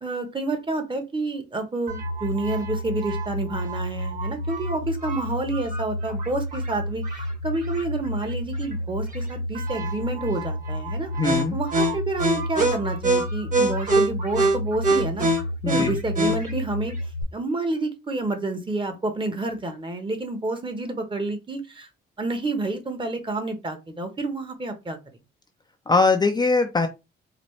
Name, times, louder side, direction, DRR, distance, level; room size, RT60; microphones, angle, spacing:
voice 1, 0.0-11.1 11.5-15.3 15.7-16.9 17.3-21.9 22.2-25.0, right 2 dB, 25° right, 6 dB, 1.1 m, -29 dB
sound 1, 1.9-17.2, right 1 dB, 40° right, 1.6 m, -26 dB
voice 2, 11.2-11.5 15.6-16.0 25.9-26.9, left 3 dB, 20° left, 5 dB, 0.5 m, -21 dB
4.0 x 2.5 x 3.2 m, 0.25 s
cardioid pair, 90°, 20 cm